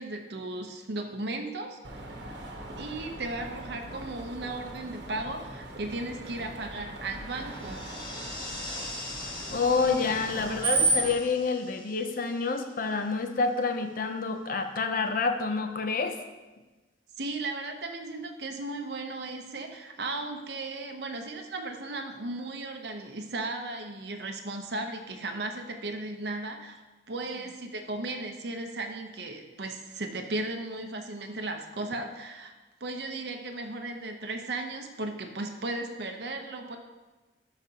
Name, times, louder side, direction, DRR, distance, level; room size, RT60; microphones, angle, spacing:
voice 1, 0.0-1.8 2.8-7.9 17.2-26.8 27.1-32.5 32.8-36.8, right 2 dB, 65° right, 4 dB, 0.8 m, -36 dB
Screech, 1.8-11.2, right 3 dB, 85° right, 1.2 m, -35 dB
sound 1, 7.3-13.2, left 2 dB, 30° left, 1.1 m, -42 dB
voice 2, 9.5-16.2, left 4 dB, 50° left, 6 dB, 0.6 m, -28 dB
12.0 x 5.1 x 2.9 m, 1.2 s
head